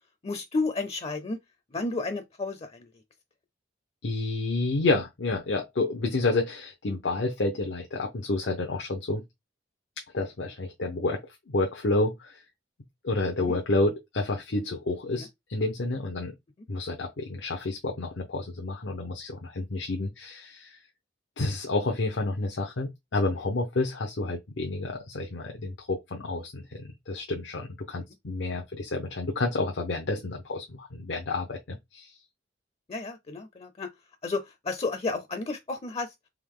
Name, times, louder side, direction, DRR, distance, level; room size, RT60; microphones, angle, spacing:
voice 1, 0.2-1.4 1.7-2.9 13.4-13.6 15.2-15.3 32.9-33.9 34.2-36.1, left 3 dB, 35° left, 0.5 m, -32 dB
voice 2, 4.0-9.2 10.1-12.4 13.0-16.3 16.7-20.8 21.4-32.2, left 2 dB, 85° left, 0.7 m, -30 dB
3.6 x 2.9 x 3.6 m
head